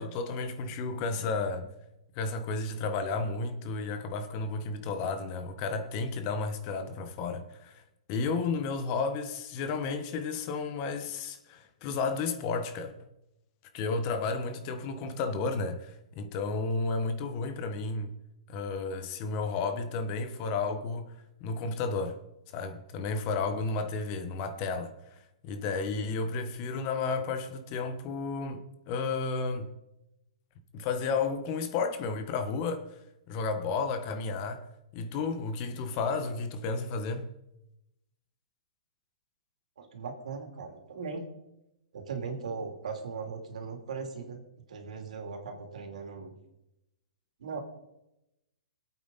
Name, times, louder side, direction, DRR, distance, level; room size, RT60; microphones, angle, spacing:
voice 1, 0.0-1.7 2.1-7.8 8.1-12.9 13.7-18.1 18.5-22.2 22.5-29.7 30.7-33.0 33.3-34.7 34.9-37.3, left 4 dB, 35° left, 1.3 m, -32 dB
voice 2, 39.8-41.3 41.9-44.4 44.7-46.4 47.4-47.6, right 5 dB, 80° right, 3.1 m, -38 dB
23.0 x 8.7 x 4.2 m
hypercardioid pair, 150°, 4 cm